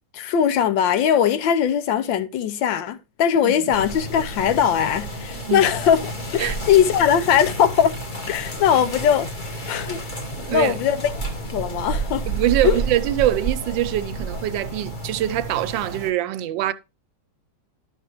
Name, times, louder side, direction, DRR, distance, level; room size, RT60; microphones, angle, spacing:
voice 1, 0.1-8.0 8.3-9.3 9.7-10.0 10.5-11.0 11.5-12.2 12.6-12.8, left 8 dB, 85° left, 1.4 m, -20 dB
sound 1, 3.7-16.1, right 2 dB, 30° left, 1.1 m, -30 dB
voice 2, 10.4-10.8 12.3-16.7, right 13 dB, 80° right, 1.3 m, -24 dB
11.5 x 6.3 x 3.0 m
omnidirectional pair, 2.0 m